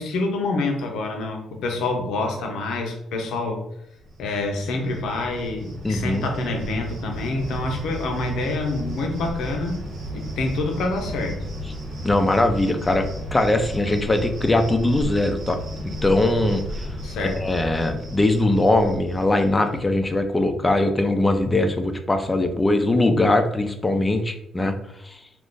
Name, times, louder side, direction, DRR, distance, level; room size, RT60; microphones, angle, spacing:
voice 1, 0.0-3.6 4.2-9.8 10.1-11.4 17.0-17.4, left 2 dB, 80° left, 2 dB, 0.7 m, -27 dB
Cricket, 4.0-19.7, equal, 70° right, 1.1 m, -34 dB
voice 2, 5.8-6.3 12.0-16.9 17.2-24.7 25.0-25.2, left 2 dB, 20° left, 7 dB, 0.4 m, -21 dB
2.5 x 2.4 x 3.7 m, 0.78 s
cardioid pair, 90°, 0 cm